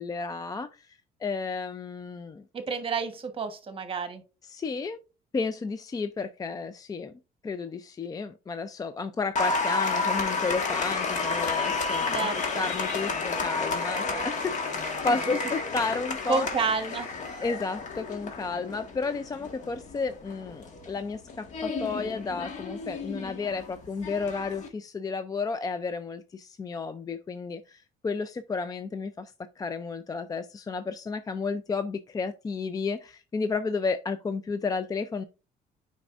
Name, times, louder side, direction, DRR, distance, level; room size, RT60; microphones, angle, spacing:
voice 1, 0.0-2.4 4.5-5.0 5.3-7.1 7.4-12.3 12.6-14.6 15.0-16.5 17.4-35.2, left 4 dB, 20° left, 0.4 m, -32 dB
voice 2, 2.5-4.2 12.1-12.7 15.1-15.3 16.3-17.1, right 4 dB, 30° right, 1.2 m, -30 dB
Applause, 9.3-24.7, left 4 dB, 45° left, 1.5 m, -31 dB
8.8 x 5.2 x 2.5 m
cardioid pair, 110°, 17 cm